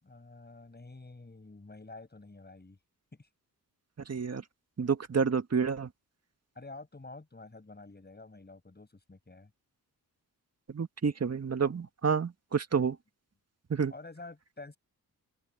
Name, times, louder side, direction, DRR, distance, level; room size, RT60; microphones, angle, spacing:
voice 1, 0.0-2.8 3.2-3.3 6.6-9.5 13.9-14.8, left 3 dB, 25° left, 7.6 m, -49 dB
voice 2, 4.1-4.4 4.8-5.9 10.7-13.0 13.7-13.9, right 6 dB, 45° right, 1.9 m, -29 dB
open air
cardioid pair, 75°, 37 cm